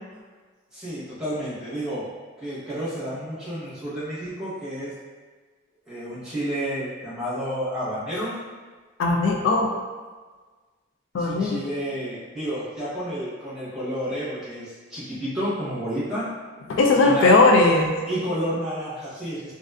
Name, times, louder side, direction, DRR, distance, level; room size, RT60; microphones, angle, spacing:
voice 1, 0.7-2.1 2.4-4.9 5.9-8.3 11.2-16.3 17.0-17.3 18.1-19.5, equal, 5° right, -12 dB, 0.9 m, -30 dB
voice 2, 9.0-9.7 11.1-11.6 16.7-17.9, left 3 dB, 75° left, 1 dB, 0.3 m, -18 dB
2.4 x 2.3 x 2.3 m, 1.4 s
head